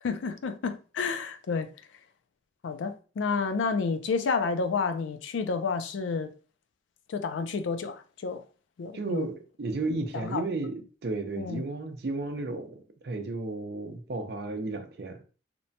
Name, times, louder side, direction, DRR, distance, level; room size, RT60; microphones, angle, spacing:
voice 1, 0.0-1.7 2.6-6.3 7.1-8.4 8.8-9.3 10.1-10.4 11.4-11.6, left 5 dB, 85° left, 0.4 m, -30 dB
voice 2, 8.9-15.2, right 2 dB, 55° right, 0.5 m, -33 dB
2.9 x 2.1 x 2.6 m
head